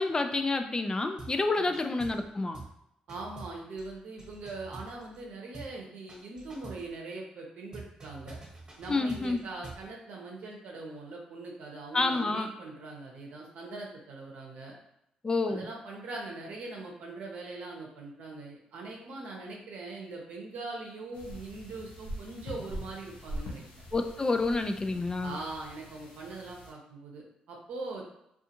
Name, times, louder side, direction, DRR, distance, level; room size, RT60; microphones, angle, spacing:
voice 1, 0.0-2.6 8.9-9.4 11.9-12.5 15.2-15.6 23.9-25.4, left 3 dB, 30° left, 6 dB, 0.3 m, -28 dB
sound 1, 1.2-1.4 1.7-2.3 2.5-2.8 3.1-5.2 5.5-5.8 6.1-6.9 7.7-9.9, right 2 dB, 30° right, 1.1 m, -46 dB
voice 2, 3.1-8.4 8.8-14.7 15.5-23.6 25.2-28.1, right 3 dB, 70° right, -1 dB, 0.7 m, -41 dB
sound 2, 21.1-26.7, equal, 85° left, 0.7 m, -43 dB
2.5 x 2.4 x 2.8 m, 0.81 s
supercardioid pair, 60°, 3 cm